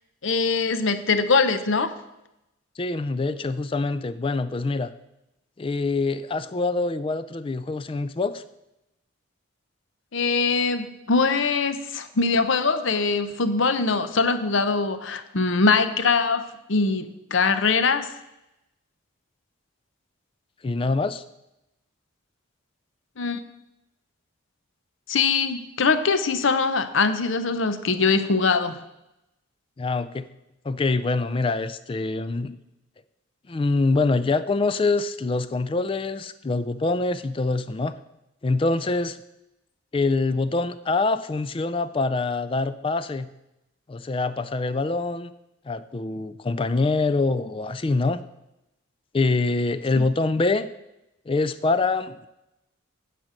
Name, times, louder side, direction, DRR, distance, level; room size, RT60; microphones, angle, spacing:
voice 1, 0.2-1.9 10.1-16.4 16.7-18.1 23.2-23.4 25.1-28.8 49.9-50.1, left 4 dB, 60° left, 10 dB, 0.7 m, -22 dB
voice 2, 2.8-4.9 5.6-8.4 20.6-21.2 29.8-30.3 30.6-32.6 33.5-37.9 38.4-39.2 39.9-43.3 43.9-45.3 45.7-48.2 49.1-50.7 51.3-52.3, left 3 dB, 25° left, 13 dB, 0.3 m, -25 dB
9.1 x 5.1 x 7.4 m, 0.89 s
head